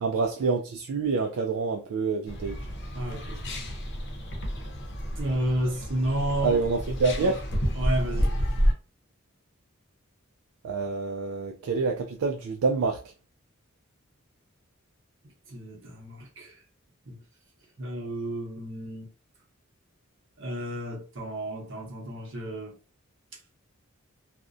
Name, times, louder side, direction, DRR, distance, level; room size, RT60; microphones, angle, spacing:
voice 1, 0.0-2.6 6.4-7.4 10.6-13.0, right 4 dB, 75° right, 0.3 m, -27 dB
sound 1, 2.3-8.7, equal, 55° left, 0.6 m, -30 dB
voice 2, 2.9-3.7 5.2-6.6 7.7-8.4 15.5-16.5 17.1-17.2 17.8-19.1 20.4-22.8, right 1 dB, 60° right, 0.8 m, -31 dB
2.5 x 2.1 x 2.4 m
head